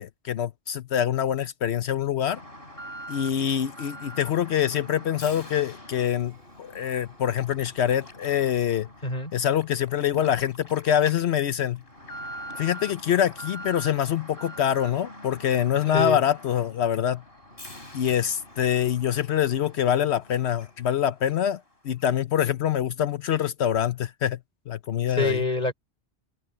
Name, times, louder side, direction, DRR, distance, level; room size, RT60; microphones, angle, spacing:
voice 1, 0.0-2.4 3.1-6.3 6.6-8.9 9.3-11.8 12.6-17.2 17.9-24.4 24.7-25.4, left 10 dB, 75° left, 1.0 m, -25 dB
Alarm, 2.3-20.9 21.3-21.4 22.0-22.1, equal, 60° left, 4.1 m, -44 dB
voice 2, 25.2-25.7, left 2 dB, 40° left, 6.0 m, -26 dB
omnidirectional pair, 1.1 m